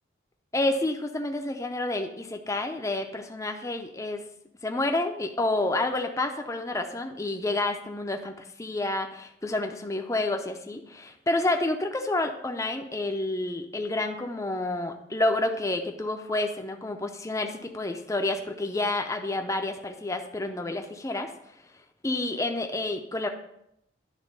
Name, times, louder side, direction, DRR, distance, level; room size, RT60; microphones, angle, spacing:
voice 1, 0.5-4.2 4.6-21.3 22.0-23.3, left 2 dB, 15° left, 4 dB, 0.5 m, -29 dB
10.0 x 3.6 x 5.3 m, 0.77 s
head